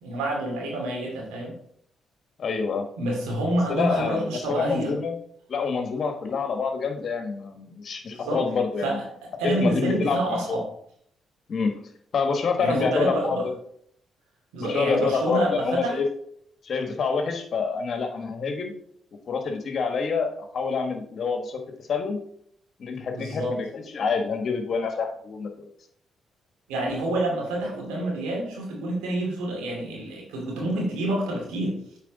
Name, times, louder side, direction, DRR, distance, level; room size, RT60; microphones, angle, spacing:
voice 1, 0.0-1.5 3.0-4.9 8.1-8.4 8.8-9.0 9.4-10.6 12.6-13.4 14.5-16.0 23.1-23.5 26.7-32.0, right 1 dB, 90° right, -1 dB, 2.5 m, -27 dB
voice 2, 2.4-2.9 3.7-5.2 5.5-9.0 9.4-10.6 11.5-11.7 12.1-13.5 14.6-16.1 16.6-18.7 19.3-22.2 22.8-25.7, left 5 dB, 60° left, 5 dB, 1.3 m, -27 dB
8.3 x 4.4 x 4.0 m, 0.66 s
supercardioid pair, 55°, 0 cm